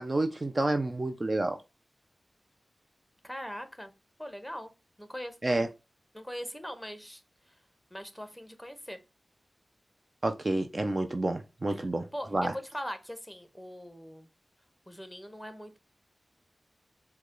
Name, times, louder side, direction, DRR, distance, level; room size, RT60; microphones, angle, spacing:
voice 1, 0.0-1.6 5.4-5.7 10.2-12.1 12.3-12.5, right 2 dB, 40° right, 0.5 m, -29 dB
voice 2, 3.2-3.9 4.2-4.7 5.0-5.7 6.1-7.2 7.9-9.0 11.7-14.3 14.9-15.8, equal, ahead, 1.0 m, -41 dB
4.8 x 2.3 x 3.7 m
cardioid pair, 50°, 0 cm